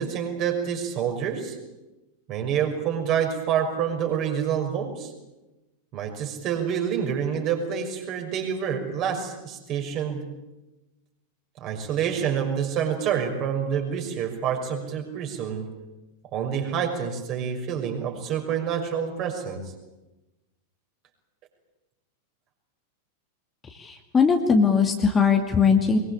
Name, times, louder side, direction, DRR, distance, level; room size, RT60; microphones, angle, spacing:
voice 1, 0.0-1.6 2.3-5.1 5.9-10.2 11.6-15.7 16.3-19.7, right 8 dB, 35° right, 3 dB, 6.0 m, -27 dB
voice 2, 23.6-26.0, left 5 dB, 20° left, 4 dB, 2.4 m, -20 dB
23.5 x 22.5 x 8.6 m, 1.0 s
figure-of-eight pair, 90°, 0 cm